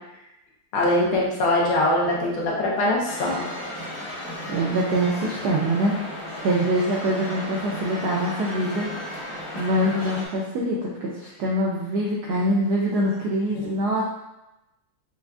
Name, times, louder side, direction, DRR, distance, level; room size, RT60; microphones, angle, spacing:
voice 1, 0.7-3.4, left 1 dB, 85° left, -3 dB, 1.8 m, -22 dB
sound 1, 3.0-10.3, left 1 dB, 25° left, 0.6 m, -34 dB
voice 2, 4.5-6.0 6.4-14.0, right 1 dB, 85° right, -3 dB, 0.9 m, -24 dB
6.0 x 2.4 x 2.3 m, 0.94 s
omnidirectional pair, 2.3 m